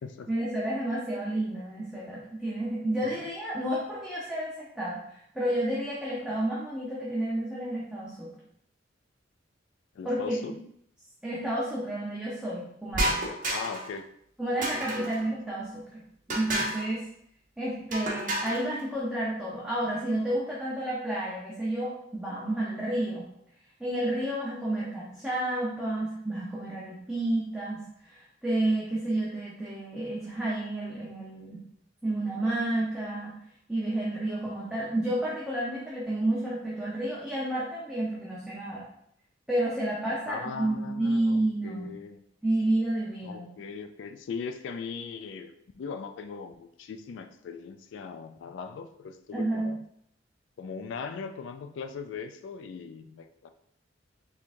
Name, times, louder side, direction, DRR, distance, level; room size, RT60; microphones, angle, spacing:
voice 1, 0.3-8.3 10.0-10.5 11.2-13.2 14.4-16.0 16.3-17.0 17.6-23.3 23.8-31.6 32.0-33.3 33.7-38.8 39.5-41.9 42.4-43.5 49.3-49.7, right 1 dB, 5° right, -8 dB, 0.8 m, -30 dB
voice 2, 10.0-10.6 13.5-14.1 15.0-15.1 34.5-34.6 40.0-42.2 43.2-49.8 50.6-53.5, left 5 dB, 70° left, 8 dB, 0.3 m, -39 dB
sound 1, 12.9-13.9 14.6-15.2 16.3-16.9 17.9-18.6, right 1 dB, 45° right, 1.0 m, -30 dB
4.5 x 3.5 x 2.6 m, 0.71 s
head